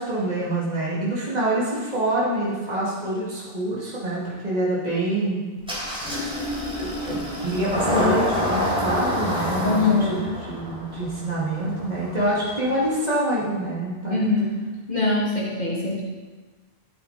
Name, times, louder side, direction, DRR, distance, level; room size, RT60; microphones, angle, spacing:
voice 1, 0.0-5.4 6.8-14.1, right 1 dB, 40° right, -7 dB, 2.7 m, -26 dB
Engine starting, 5.6-13.0, left 1 dB, 5° right, 4.1 m, -28 dB
voice 2, 9.6-10.2 14.1-14.6 14.9-16.0, left 3 dB, 45° left, -7 dB, 2.6 m, -23 dB
14.0 x 8.7 x 4.3 m, 1.3 s
omnidirectional pair, 1.0 m